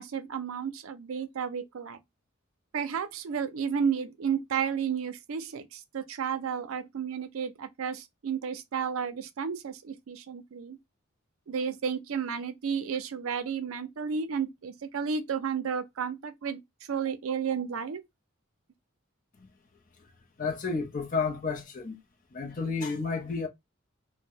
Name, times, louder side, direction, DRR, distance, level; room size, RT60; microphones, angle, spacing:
voice 1, 0.0-2.0 2.7-10.8 11.5-16.6 16.9-18.0, right 7 dB, 90° right, 0.4 m, -32 dB
voice 2, 20.4-21.9 22.3-23.5, left 4 dB, 40° left, 0.6 m, -31 dB
2.7 x 2.1 x 3.6 m
head